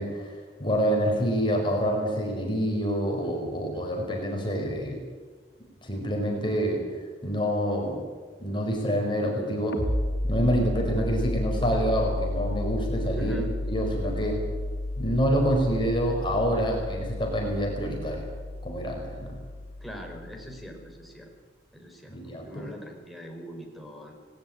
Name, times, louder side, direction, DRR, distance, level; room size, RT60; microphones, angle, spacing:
voice 1, 0.0-5.0 5.8-6.8 7.2-8.0 8.4-9.8 10.2-13.3 13.7-14.4 15.0-18.3 18.6-19.4 22.1-22.7, equal, 30° left, 1 dB, 4.9 m, -27 dB
sound 1, 9.7-21.1, left 1 dB, 80° left, 2.8 m, -32 dB
voice 2, 13.2-13.6 19.8-21.3 21.7-22.2 22.4-24.1, equal, ahead, 2 dB, 4.7 m, -42 dB
19.5 x 18.5 x 8.8 m, 1.5 s
head